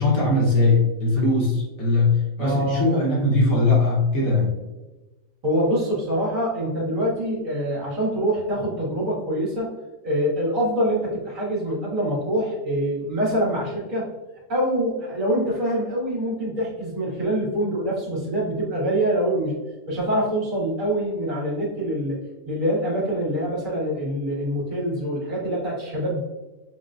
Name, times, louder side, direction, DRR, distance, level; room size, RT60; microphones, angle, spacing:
voice 1, 0.0-4.5, left 2 dB, 60° left, -3 dB, 1.5 m, -20 dB
voice 2, 2.4-2.8 5.4-9.7 10.0-14.1 14.5-19.6 19.9-22.2 22.4-26.2, equal, 75° right, -8 dB, 1.7 m, -25 dB
6.4 x 2.2 x 2.5 m, 1.1 s
omnidirectional pair, 1.4 m